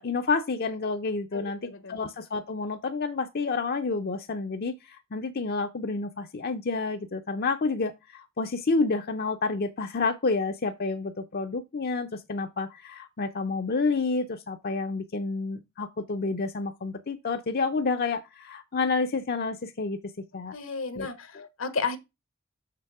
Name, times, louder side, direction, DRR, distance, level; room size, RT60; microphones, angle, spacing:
voice 1, 0.0-20.0 20.3-20.6 21.0-21.1 21.3-21.5, left 4 dB, 50° left, 0.6 m, -29 dB
voice 2, 1.3-2.0 20.5-22.0, left 4 dB, 75° left, 1.2 m, -33 dB
6.8 x 6.3 x 4.8 m
head